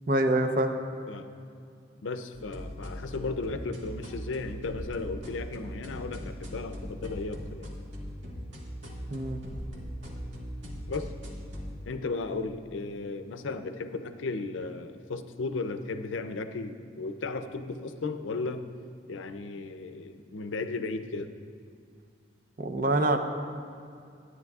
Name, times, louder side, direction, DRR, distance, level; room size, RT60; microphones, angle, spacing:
voice 1, 0.1-0.8 9.1-9.4 22.6-23.2, right 1 dB, 45° right, 6 dB, 0.6 m, -25 dB
voice 2, 2.0-7.7 10.9-11.1 11.9-18.6 19.1-21.3, left 3 dB, 90° left, 8 dB, 0.5 m, -35 dB
sound 1, 2.3-11.8, equal, 80° right, 1.6 m, -40 dB
13.0 x 9.5 x 2.4 m, 2.4 s
head